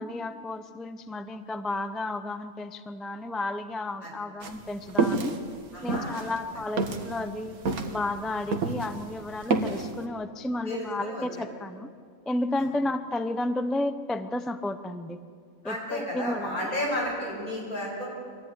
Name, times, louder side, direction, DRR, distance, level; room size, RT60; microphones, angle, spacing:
voice 1, 0.0-5.4 5.8-7.6 7.9-11.9 12.3-15.2 15.6-16.6, left 2 dB, ahead, 10 dB, 0.4 m, -32 dB
sound 1, 4.4-9.0 9.3-9.9, right 4 dB, 80° right, 1.9 m, -28 dB
voice 2, 5.7-6.2 10.7-11.2 15.6-18.1, left 1 dB, 75° left, -2 dB, 7.0 m, -32 dB
24.0 x 13.0 x 9.7 m, 2.1 s
omnidirectional pair, 1.5 m